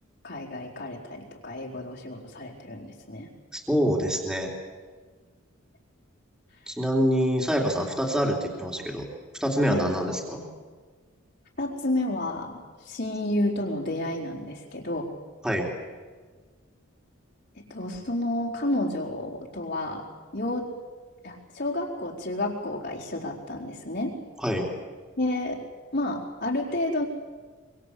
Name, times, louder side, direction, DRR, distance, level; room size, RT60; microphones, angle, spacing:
voice 1, 0.2-3.3 9.7-9.9 11.6-15.1 17.6-20.1 20.3-20.7 21.2-24.2 25.2-25.6 25.9-27.1, left 1 dB, 50° left, -4 dB, 4.3 m, -30 dB
voice 2, 3.5-4.5 6.7-9.1 9.4-10.5 15.4-15.7 24.4-24.7, equal, 5° right, 0 dB, 3.3 m, -25 dB
25.0 x 24.5 x 8.5 m, 1.5 s
head